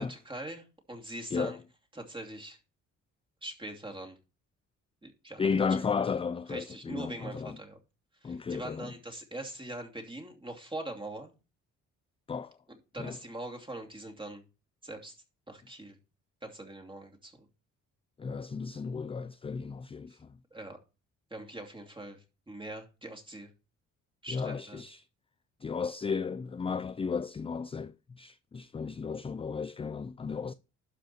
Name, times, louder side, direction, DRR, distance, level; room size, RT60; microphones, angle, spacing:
voice 1, 0.0-1.6 1.9-2.6 3.4-4.2 5.0-5.5 6.5-7.8 8.2-11.3 12.9-14.4 14.8-15.1 15.5-16.0 16.4-17.5 20.1-20.2 20.5-20.8 21.3-23.5 24.2-24.8, right 1 dB, 15° right, 2.7 m, -42 dB
voice 2, 5.4-7.6 8.2-8.9 12.3-12.6 13.0-13.2 18.2-20.3 24.3-25.0 25.6-30.5, left 5 dB, 20° left, 0.4 m, -34 dB
12.0 x 5.2 x 4.3 m
cardioid pair, 90°, 30 cm